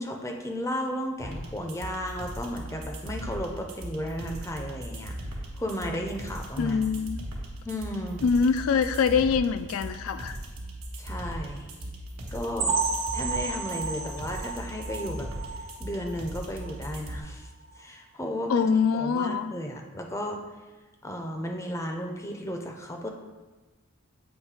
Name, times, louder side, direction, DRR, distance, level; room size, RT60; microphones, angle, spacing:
voice 1, 0.0-5.2 5.5-6.9 7.6-8.2 11.0-11.7 12.3-12.8 13.1-15.3 15.8-20.4 21.0-23.1, equal, 15° left, 2 dB, 0.5 m, -34 dB
sound 1, 1.2-17.2, right 1 dB, 85° right, 1.3 m, -38 dB
voice 2, 6.6-7.3 8.2-10.4 18.5-19.5, left 6 dB, 70° left, 11 dB, 0.3 m, -24 dB
sound 2, 12.6-16.2 16.6-16.8 17.1-17.2 17.7-17.8, right 4 dB, 60° right, 1.2 m, -32 dB
8.2 x 3.1 x 4.8 m, 1.3 s
head